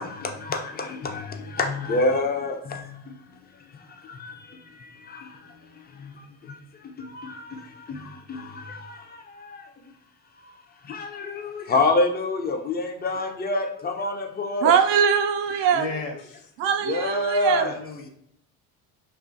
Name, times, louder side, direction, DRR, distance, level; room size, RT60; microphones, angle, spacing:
voice 1, 1.6-2.5 11.0-14.7 16.9-17.7, left 2 dB, 20° left, 5 dB, 0.4 m, -25 dB
voice 2, 14.6-15.9 16.6-17.7, right 7 dB, 70° right, 6 dB, 0.5 m, -21 dB
voice 3, 15.7-16.5 17.5-18.1, left 4 dB, 85° left, 3 dB, 0.7 m, -35 dB
2.4 x 2.4 x 2.5 m, 0.72 s
supercardioid pair, 70°, 46 cm